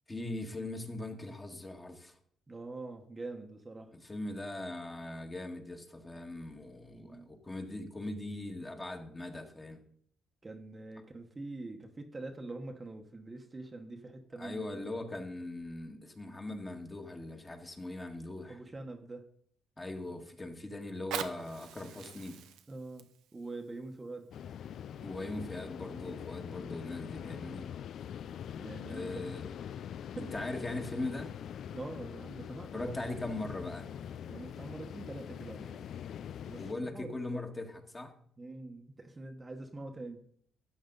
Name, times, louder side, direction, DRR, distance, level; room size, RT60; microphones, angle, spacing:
voice 1, 0.1-2.1 4.1-9.8 14.4-18.6 19.8-22.4 25.0-27.7 28.9-29.4 30.1-31.3 32.7-33.9 36.6-38.1, left 2 dB, 20° left, 3 dB, 1.7 m, -40 dB
voice 2, 2.5-4.0 6.9-7.3 10.4-14.8 18.5-19.2 22.7-24.3 28.6-29.2 30.2-30.3 31.7-33.0 34.3-35.9 36.5-37.4 38.4-40.2, right 2 dB, 25° right, 4 dB, 1.1 m, -44 dB
Fire, 20.8-25.8 26.5-26.6, right 9 dB, 90° right, 0.8 m, -45 dB
sound 1, 24.3-36.7, left 9 dB, 70° left, 0.3 m, -43 dB
13.0 x 8.6 x 3.9 m, 0.62 s
cardioid pair, 90°, 0 cm